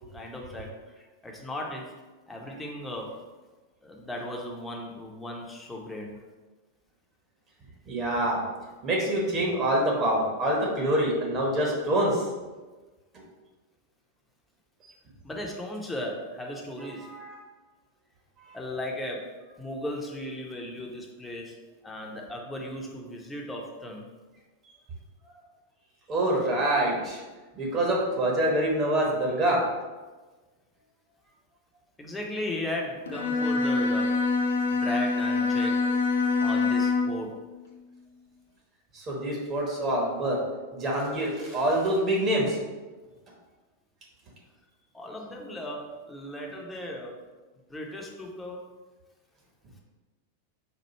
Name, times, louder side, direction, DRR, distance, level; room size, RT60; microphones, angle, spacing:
voice 1, 0.1-0.7 1.2-1.9 2.3-3.2 3.8-6.2 15.2-17.1 18.5-19.3 19.6-24.1 32.0-34.2 34.7-35.8 36.4-37.4 44.9-47.2 47.7-48.7, left 1 dB, 10° left, -1 dB, 0.8 m, -36 dB
voice 2, 7.9-8.4 8.8-12.2 17.0-17.3 26.1-27.2 27.5-29.6 38.9-40.4 40.7-42.6, right 1 dB, 30° right, -2 dB, 1.2 m, -26 dB
Bowed string instrument, 33.1-37.2, left 3 dB, 65° left, 0.5 m, -25 dB
4.4 x 2.7 x 4.3 m, 1.3 s
figure-of-eight pair, 90°, 0 cm